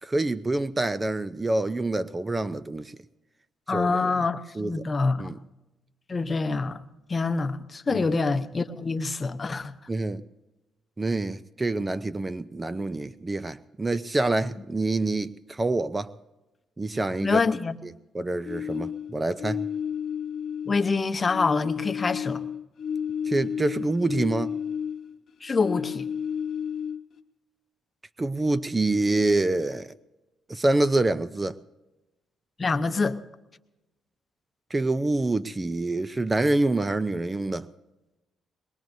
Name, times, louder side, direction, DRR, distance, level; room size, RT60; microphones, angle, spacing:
voice 1, 0.0-3.0 3.7-4.1 4.6-4.8 5.2-5.4 7.9-8.0 9.9-10.2 11.0-16.1 16.8-17.4 17.8-19.6 23.3-24.5 28.2-29.9 30.5-31.6 34.7-37.7, right 2 dB, 20° right, 0.5 m, -26 dB
voice 2, 3.7-5.3 6.1-6.8 7.1-9.7 17.2-17.8 20.7-22.4 25.4-26.1 32.6-33.2, left 4 dB, 30° left, 0.8 m, -26 dB
sound 1, 18.4-21.0 21.2-25.2 25.5-27.2, left 8 dB, 55° left, 0.9 m, -32 dB
22.0 x 20.5 x 2.7 m
cardioid pair, 80°, 0 cm